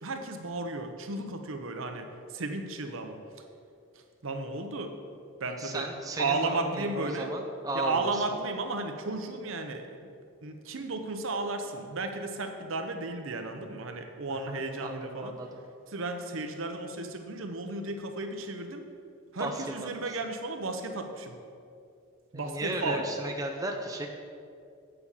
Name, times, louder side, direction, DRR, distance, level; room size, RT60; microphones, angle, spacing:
voice 1, 0.0-3.2 3.9-4.9 5.4-5.9 6.2-7.3 7.7-10.0 10.4-15.4 15.9-18.9 19.3-21.4 22.3-23.1, right 3 dB, 65° right, 6 dB, 0.8 m, -34 dB
voice 2, 5.6-8.2 14.5-15.5 19.4-19.7 20.1-20.2 22.3-24.1, right 1 dB, 15° right, 2 dB, 0.6 m, -35 dB
8.3 x 6.9 x 5.6 m, 2.4 s
head